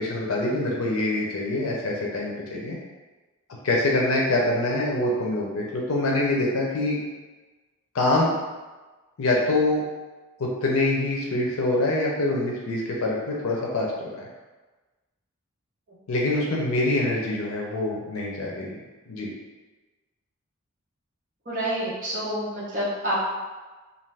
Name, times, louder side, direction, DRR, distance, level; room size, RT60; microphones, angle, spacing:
voice 1, 0.0-2.8 3.6-7.0 7.9-8.3 9.2-9.8 10.4-14.3 16.1-18.8 19.1-19.3, left 2 dB, 80° left, -2 dB, 0.5 m, -25 dB
voice 2, 21.5-23.2, right 1 dB, 40° right, -7 dB, 0.8 m, -28 dB
2.5 x 2.5 x 3.2 m, 1.2 s
head